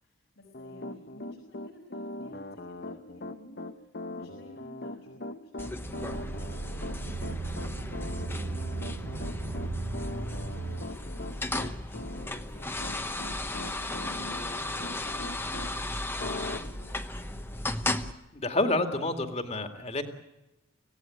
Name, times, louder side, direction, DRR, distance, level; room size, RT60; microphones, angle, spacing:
voice 1, 0.0-6.3 6.6-13.5 13.8-17.9, left 1 dB, 80° left, -3 dB, 6.0 m, -53 dB
Piano, 0.5-15.7 16.2-16.6, left 2 dB, 50° left, 1.1 m, -40 dB
sound 1, 5.6-18.1, left 1 dB, 10° left, 1.0 m, -35 dB
sound 2, 5.8-10.9, right 3 dB, 80° right, 1.1 m, -37 dB
voice 2, 18.3-20.0, left 2 dB, 30° left, 7 dB, 2.2 m, -28 dB
26.0 x 17.0 x 9.4 m, 0.97 s
head